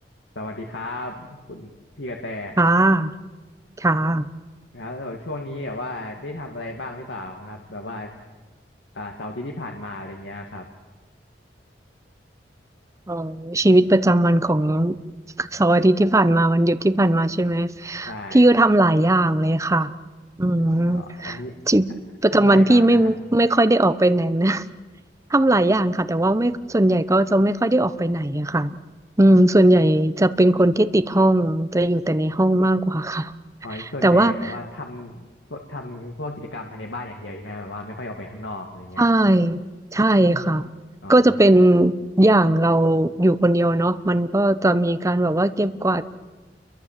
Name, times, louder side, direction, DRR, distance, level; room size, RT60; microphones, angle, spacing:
voice 1, 0.4-1.7 2.0-2.6 4.7-8.1 8.9-10.7 18.1-18.5 20.9-21.5 22.3-23.1 33.6-39.1 41.0-41.3, left 2 dB, 85° left, 2 dB, 2.1 m, -34 dB
voice 2, 2.6-3.1 3.8-4.3 13.1-15.0 15.4-19.9 20.4-21.4 21.7-21.9 22.2-24.6 25.3-28.8 29.2-33.4 34.0-34.3 39.0-39.6 39.9-40.7 41.1-46.0, right 1 dB, 20° right, 12 dB, 0.8 m, -18 dB
29.0 x 23.0 x 7.4 m, 1.3 s
head